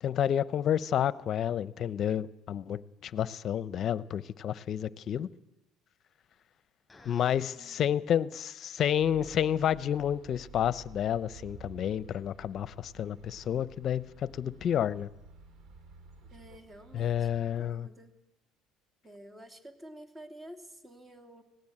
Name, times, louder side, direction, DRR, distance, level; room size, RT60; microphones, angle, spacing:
voice 1, 0.0-5.3 7.0-15.1 16.9-17.9, left 9 dB, 45° left, 17 dB, 0.8 m, -30 dB
Fart, 6.9-7.5 8.8-8.9, left 2 dB, 15° left, 6.6 m, -55 dB
voice 2, 7.6-8.0 16.3-18.1 19.0-21.4, right 1 dB, 15° right, 5 dB, 3.0 m, -50 dB
sound 1, 9.0-17.4, right 3 dB, 55° right, 2.7 m, -52 dB
18.5 x 17.0 x 8.8 m, 0.96 s
supercardioid pair, 100°, 0 cm